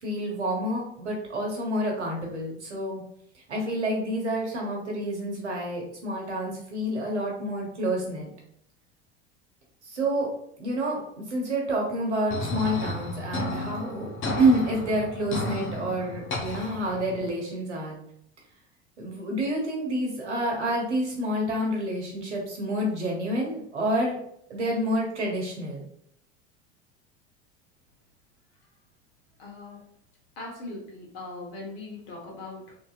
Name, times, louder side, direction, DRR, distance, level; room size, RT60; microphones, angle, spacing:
voice 1, 0.0-3.0 3.5-8.3 9.8-10.3 10.6-11.0 11.3-14.1 14.4-18.0 19.0-24.2 24.5-25.9, right 1 dB, 85° right, -1 dB, 1.1 m, -28 dB
sound 1, 12.3-17.3, left 2 dB, 35° left, 0.8 m, -33 dB
voice 2, 29.4-29.8 30.4-32.8, left 2 dB, 65° left, -2 dB, 1.4 m, -40 dB
3.4 x 2.7 x 2.4 m, 0.69 s
hypercardioid pair, 75°, 34 cm